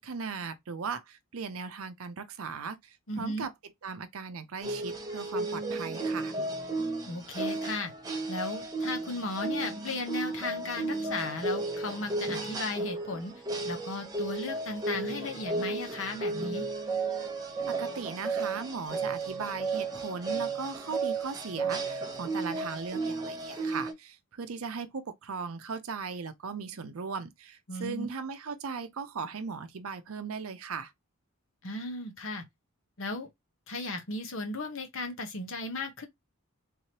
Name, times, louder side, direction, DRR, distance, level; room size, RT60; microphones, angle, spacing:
voice 1, 0.0-3.5 3.8-6.3 17.7-30.9, right 5 dB, 75° right, 0.6 m, -38 dB
voice 2, 3.1-3.5 7.1-7.9 8.3-13.3 13.6-16.7 27.7-28.1 31.6-32.4 33.0-33.3 33.7-36.1, left 2 dB, 60° left, 1.0 m, -36 dB
sound 1, 4.6-23.9, right 3 dB, 15° right, 0.8 m, -34 dB
3.7 x 3.1 x 2.9 m
head